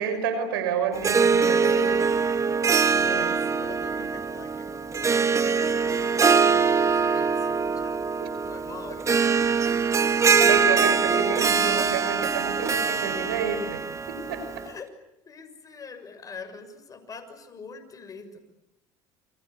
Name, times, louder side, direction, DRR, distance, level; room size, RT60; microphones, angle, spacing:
voice 1, 0.0-2.0 2.9-3.5 4.0-4.1 8.2-8.3 10.4-14.7, right 7 dB, 90° right, 11 dB, 5.6 m, -30 dB
Harp, 0.9-14.7, right 5 dB, 25° right, 1.7 m, -23 dB
voice 2, 2.6-8.0 8.4-9.2 10.0-10.4 14.6-14.9 15.2-18.4, left 5 dB, 30° left, 7 dB, 6.4 m, -45 dB
29.5 x 24.0 x 8.3 m, 0.85 s
supercardioid pair, 95°, 12 cm